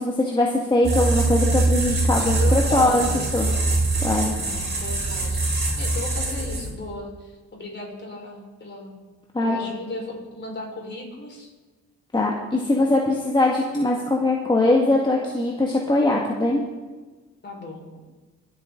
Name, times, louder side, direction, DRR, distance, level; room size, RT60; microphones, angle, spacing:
voice 1, 0.0-3.1 3.3-3.5 4.0-4.3 9.3-9.6 12.1-16.6, left 2 dB, 15° left, -2 dB, 1.7 m, -21 dB
sound 1, 0.8-6.9, right 2 dB, 35° right, 5.1 m, -23 dB
voice 2, 2.2-3.7 4.1-9.0 9.4-11.5 12.6-13.0 17.4-18.0, left 2 dB, 35° left, 0 dB, 4.6 m, -36 dB
23.0 x 8.5 x 3.8 m, 1.3 s
cardioid pair, 90°, 30 cm